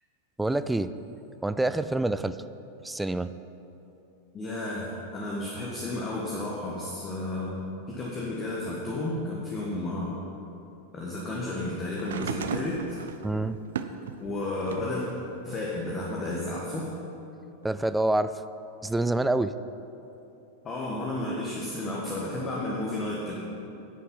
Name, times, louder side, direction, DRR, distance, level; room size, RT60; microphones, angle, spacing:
voice 1, 0.4-0.9 1.4-2.4 2.8-3.3 13.2-13.6 17.6-18.3 18.8-19.5, right 2 dB, 5° right, 13 dB, 0.3 m, -26 dB
voice 2, 4.3-10.2 10.9-12.8 14.2-15.1 15.4-16.9 20.6-23.3, left 2 dB, 25° left, -4 dB, 1.5 m, -32 dB
sound 1, 11.9-15.0 15.5-16.6 17.6-17.7, right 7 dB, 60° right, 0.5 m, -37 dB
9.9 x 8.4 x 5.5 m, 3.0 s
figure-of-eight pair, 90°, 0 cm